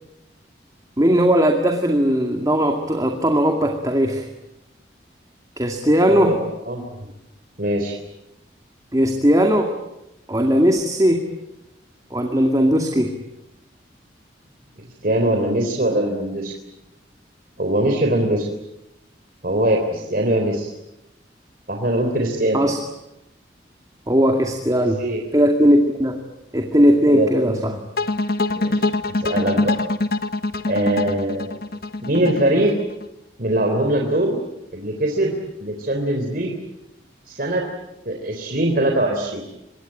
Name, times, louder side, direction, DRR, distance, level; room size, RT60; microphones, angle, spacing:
voice 1, 1.0-4.3 5.6-6.4 8.9-9.7 10.3-11.2 12.1-13.1 22.5-22.8 24.1-25.0 25.3-26.2 26.5-27.8, equal, 20° right, 3 dB, 2.2 m, -18 dB
voice 2, 6.1-7.1 7.6-8.0 15.0-16.5 17.6-18.5 19.4-20.7 21.7-22.6 25.0-25.2 27.1-27.8 28.5-29.7 30.7-31.5 32.0-32.7 33.4-34.4 34.7-36.6 37.3-37.6 38.1-39.4, right 1 dB, 50° right, 2 dB, 3.7 m, -22 dB
sound 1, 28.0-33.1, left 2 dB, 55° left, 1.2 m, -23 dB
26.5 x 23.0 x 8.9 m, 0.91 s
head